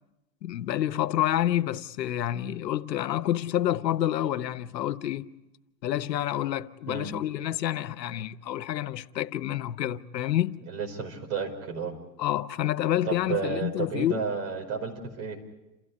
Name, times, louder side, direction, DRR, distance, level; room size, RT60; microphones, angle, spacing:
voice 1, 0.4-5.3 5.8-10.6 12.2-14.2, left 12 dB, 80° left, 1.2 m, -28 dB
voice 2, 10.6-12.0 13.1-15.4, right 5 dB, 50° right, 5.3 m, -32 dB
28.5 x 16.0 x 9.6 m
hypercardioid pair, 140°, 49 cm